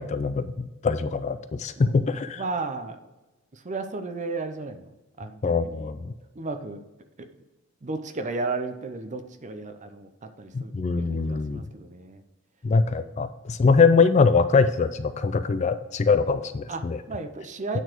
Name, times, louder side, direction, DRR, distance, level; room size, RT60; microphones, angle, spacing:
voice 1, 0.0-2.4 5.4-6.1 10.5-11.6 12.6-17.0, left 4 dB, 35° left, 11 dB, 0.3 m, -23 dB
voice 2, 1.8-3.0 3.5-4.9 5.2-5.9 6.4-6.8 7.8-12.2 13.0-13.2 16.7-17.8, right 3 dB, 35° right, 8 dB, 0.7 m, -34 dB
9.1 x 4.1 x 4.5 m, 1.1 s
head